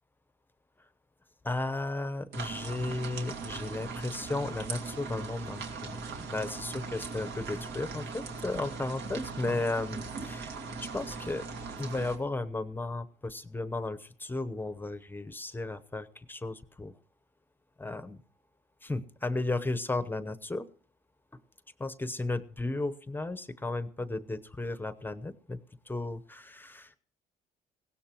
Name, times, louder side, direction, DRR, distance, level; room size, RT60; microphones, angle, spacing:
voice 1, 1.4-11.5 11.8-16.9 17.8-18.2 18.8-20.7 21.3-21.4 21.8-25.6 25.9-27.0, left 2 dB, 10° left, 12 dB, 0.9 m, -34 dB
sound 1, 2.3-12.2, right 4 dB, 75° right, 2.5 m, -39 dB
20.0 x 17.0 x 3.0 m, 0.43 s
cardioid pair, 110°, 17 cm